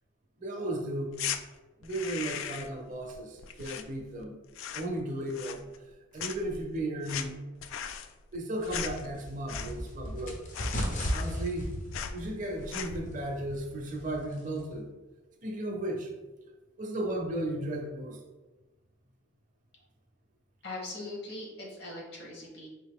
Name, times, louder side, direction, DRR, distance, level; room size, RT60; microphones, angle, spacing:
voice 1, 0.4-1.2 1.8-4.3 4.7-5.7 6.1-7.4 8.3-10.4 11.1-11.7 12.1-14.9 15.4-16.1 16.8-18.2, right 1 dB, 40° right, 1 dB, 0.6 m, -35 dB
sound 1, 1.1-1.4 1.8-2.8 3.1-4.2 4.5-5.0 5.3-5.9 6.2-10.0 10.2-10.3 10.5-11.6 11.9-12.2 12.6-13.1, left 8 dB, 85° left, 0.3 m, -38 dB
sound 2, 8.6-14.8, equal, 40° left, 0.6 m, -37 dB
voice 2, 20.6-22.7, left 2 dB, 55° left, -2 dB, 1.1 m, -41 dB
3.7 x 2.6 x 3.5 m, 1.2 s
head